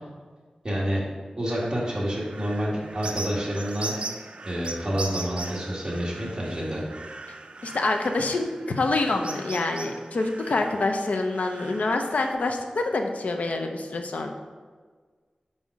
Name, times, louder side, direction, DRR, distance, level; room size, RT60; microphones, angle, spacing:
voice 1, 0.6-1.1 1.4-3.9 4.4-6.8, equal, 30° right, -5 dB, 2.1 m, -28 dB
sound 1, 1.5-12.3, right 3 dB, 55° right, 0.5 m, -39 dB
voice 2, 7.6-14.3, left 2 dB, 80° left, 4 dB, 0.7 m, -26 dB
5.6 x 5.4 x 4.7 m, 1.5 s
wide cardioid pair, 90°, 2 cm